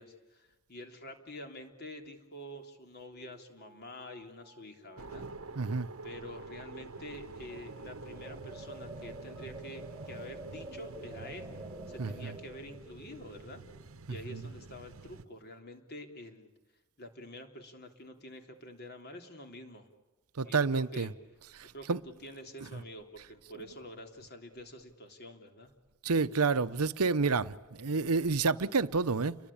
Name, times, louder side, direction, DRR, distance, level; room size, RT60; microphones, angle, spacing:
voice 1, 0.0-5.2 6.0-11.5 11.9-13.6 14.1-16.5 17.0-19.9 20.4-21.1 21.7-21.9 22.2-25.7, left 1 dB, 45° left, 3.4 m, -47 dB
sound 1, 2.8-2.9 3.1-5.7 5.9-6.2 6.5-7.1 7.5-14.4, right 2 dB, 10° right, 1.4 m, -50 dB
sound 2, 5.0-15.3, right 3 dB, 65° right, 1.0 m, -47 dB
voice 2, 5.5-5.9 12.0-12.4 14.1-14.5 20.4-21.1 21.6-22.0 22.6-22.8 26.0-29.4, right 4 dB, 85° right, 0.9 m, -29 dB
30.0 x 22.5 x 8.7 m
head